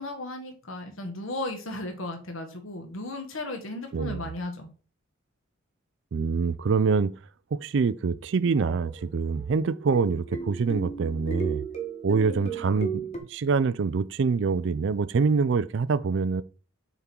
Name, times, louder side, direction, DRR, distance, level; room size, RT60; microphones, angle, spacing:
voice 1, 0.0-4.7, left 2 dB, 80° left, 1.6 m, -35 dB
voice 2, 6.1-7.1 7.5-11.6 12.0-16.4, right 5 dB, 60° right, 0.4 m, -25 dB
Dog, 8.5-12.2, right 2 dB, 25° right, 0.9 m, -49 dB
sound 1, 9.6-13.2, right 4 dB, 35° left, 1.5 m, -35 dB
6.8 x 3.8 x 4.5 m
head